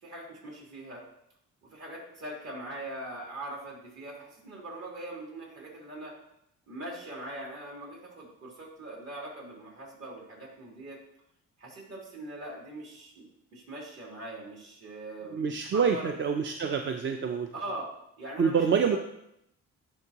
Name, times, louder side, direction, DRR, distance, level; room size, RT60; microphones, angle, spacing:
voice 1, 0.0-1.0 1.7-6.1 6.7-11.0 11.6-16.1 17.5-17.9 18.2-19.0, right 1 dB, 55° right, -3 dB, 2.9 m, -41 dB
voice 2, 15.3-17.5 18.4-19.0, right 6 dB, 40° right, 5 dB, 0.5 m, -26 dB
10.5 x 4.5 x 2.9 m, 0.78 s
cardioid pair, 90°, 30 cm